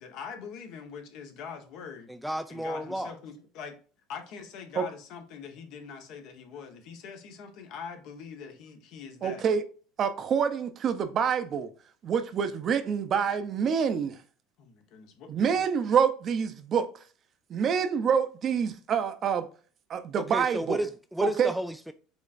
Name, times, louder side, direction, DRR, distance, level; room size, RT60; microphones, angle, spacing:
voice 1, 0.0-2.1 2.5-3.8 4.1-9.4 14.6-15.3, left 6 dB, 65° left, 1.1 m, -43 dB
voice 2, 2.1-3.1 20.1-21.9, equal, ahead, 0.3 m, -32 dB
voice 3, 9.2-9.6 10.0-11.7 12.0-14.2 15.3-16.9 17.5-19.5 19.9-20.8 21.2-21.5, right 7 dB, 40° right, 0.6 m, -26 dB
5.2 x 3.6 x 2.5 m
supercardioid pair, 110°, 0 cm